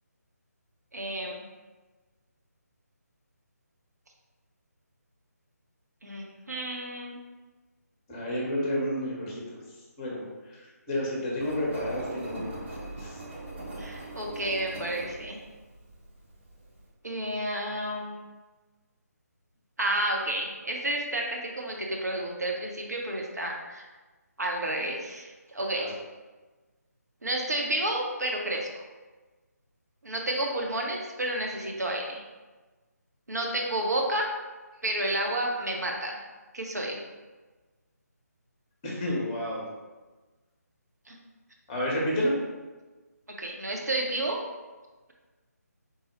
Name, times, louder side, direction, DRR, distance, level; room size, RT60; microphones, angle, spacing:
voice 1, 0.9-1.4 6.0-7.2 13.8-15.4 17.0-18.2 19.8-23.8 24.4-25.9 27.2-28.8 30.0-32.3 33.3-34.2 34.8-36.2 36.5-37.0 41.1-41.2 43.4-44.4, right 1 dB, 70° right, 0 dB, 0.8 m, -31 dB
voice 2, 8.1-9.6 10.0-10.2 10.9-12.5 13.0-13.1 25.7-25.9 38.8-39.7 41.7-42.3, left 1 dB, 15° left, -4 dB, 0.7 m, -30 dB
Engine, 11.4-16.9, right 2 dB, 40° right, 0.9 m, -41 dB
3.8 x 2.0 x 4.1 m, 1.3 s
figure-of-eight pair, 150°, 9 cm